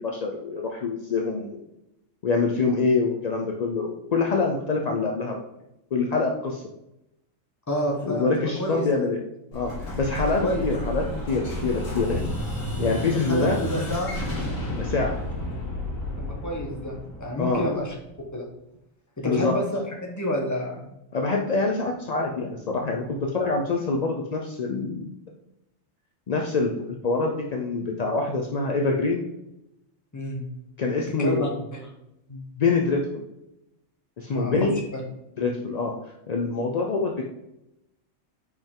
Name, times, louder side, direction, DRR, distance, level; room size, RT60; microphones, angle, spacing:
voice 1, 0.0-1.7 2.2-5.4 5.9-6.6 8.1-9.2 9.5-12.2 12.8-13.6 14.8-15.2 17.4-17.7 19.2-19.6 21.1-25.1 26.3-29.2 30.8-31.4 32.3-33.2 34.2-34.8 35.4-35.9 36.3-37.2, left 3 dB, 50° left, 1 dB, 0.4 m, -25 dB
voice 2, 7.7-9.1 10.4-10.7 13.1-14.2 16.2-17.9 18.3-18.4 19.2-20.9 30.1-30.5 31.2-31.9 34.3-34.6 34.9-35.0, equal, 15° left, 0 dB, 1.0 m, -29 dB
Explosion, 9.5-18.2, left 1 dB, 70° left, 1.9 m, -31 dB
5.4 x 4.7 x 3.7 m, 0.86 s
omnidirectional pair, 1.4 m